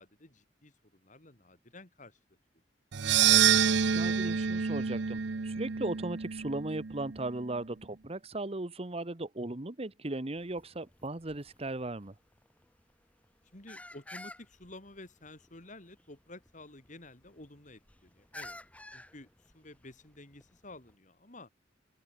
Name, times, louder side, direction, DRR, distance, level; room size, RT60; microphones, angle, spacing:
voice 1, 0.0-2.2 13.5-18.6 18.9-21.5, left 2 dB, 45° left, 4.0 m, -51 dB
sound 1, 2.9-7.3, right 8 dB, 80° right, 0.7 m, -27 dB
voice 2, 3.9-12.1, right 2 dB, 35° right, 1.2 m, -37 dB
sound 2, 10.3-20.9, left 1 dB, 10° left, 1.3 m, -53 dB
open air
head